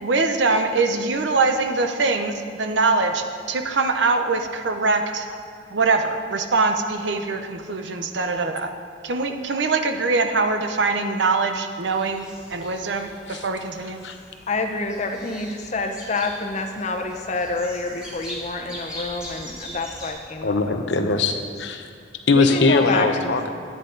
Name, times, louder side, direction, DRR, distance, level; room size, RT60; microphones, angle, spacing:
voice 1, 0.0-5.3 5.7-8.7 9.0-14.0, right 3 dB, 80° right, 6 dB, 0.7 m, -23 dB
birds unprocessed, 11.8-20.1, equal, 5° right, 1.8 m, -41 dB
voice 2, 14.5-20.9 21.3-21.4 22.3-23.4, left 3 dB, 40° left, 5 dB, 0.8 m, -28 dB
voice 3, 20.4-21.9 22.3-23.5, left 3 dB, 80° left, 6 dB, 0.7 m, -21 dB
10.0 x 9.5 x 3.9 m, 2.1 s
head